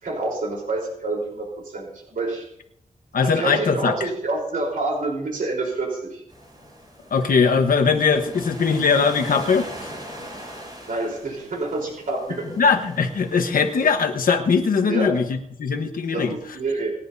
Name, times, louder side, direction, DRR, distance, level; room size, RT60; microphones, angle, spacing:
voice 1, 0.0-2.4 3.2-6.2 10.9-12.5 14.8-15.2 16.1-16.9, right 2 dB, 75° right, -1 dB, 4.1 m, -27 dB
voice 2, 3.1-4.1 7.1-9.9 12.6-16.4, left 5 dB, 80° left, 5 dB, 1.3 m, -20 dB
sound 1, 6.3-13.9, equal, 30° right, 7.5 m, -40 dB
28.5 x 10.5 x 2.8 m, 0.74 s
wide cardioid pair, 160°, 14 cm